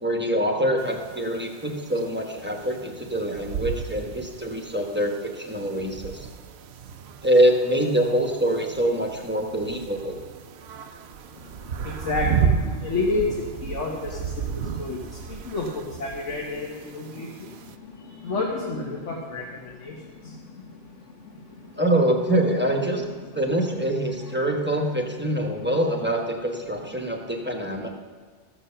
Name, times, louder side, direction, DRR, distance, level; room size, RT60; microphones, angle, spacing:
voice 1, 0.0-6.3 7.2-10.2 21.8-23.0 23.3-27.9, right 1 dB, 10° right, 2 dB, 1.0 m, -24 dB
sound 1, 0.8-17.8, right 7 dB, 65° right, 0.8 m, -33 dB
voice 2, 11.3-21.8 23.8-24.4 25.6-25.7, left 3 dB, 80° left, -2 dB, 1.6 m, -31 dB
14.0 x 6.9 x 5.6 m, 1.5 s
omnidirectional pair, 1.2 m